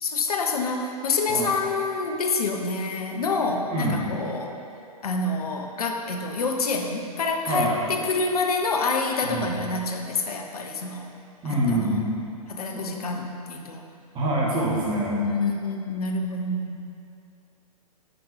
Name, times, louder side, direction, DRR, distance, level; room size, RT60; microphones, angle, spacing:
voice 1, 0.0-4.5 5.0-11.1 11.4-12.0 12.5-13.8 15.1-16.8, left 3 dB, 70° left, 3 dB, 0.8 m, -27 dB
voice 2, 9.2-9.5 11.4-12.0 12.7-12.9 14.1-15.2, right 1 dB, 25° right, -5 dB, 1.8 m, -25 dB
9.3 x 4.3 x 4.8 m, 2.6 s
figure-of-eight pair, 110°, 20 cm